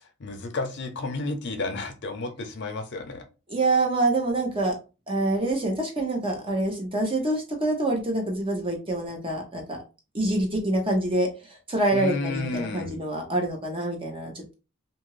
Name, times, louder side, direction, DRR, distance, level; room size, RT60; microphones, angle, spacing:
voice 1, 0.0-3.2 11.9-12.9, left 3 dB, 55° left, 6 dB, 0.6 m, -32 dB
voice 2, 3.5-4.7 5.1-9.8 10.1-14.5, right 2 dB, 25° right, 1 dB, 0.8 m, -26 dB
2.8 x 2.5 x 3.0 m, 0.31 s
head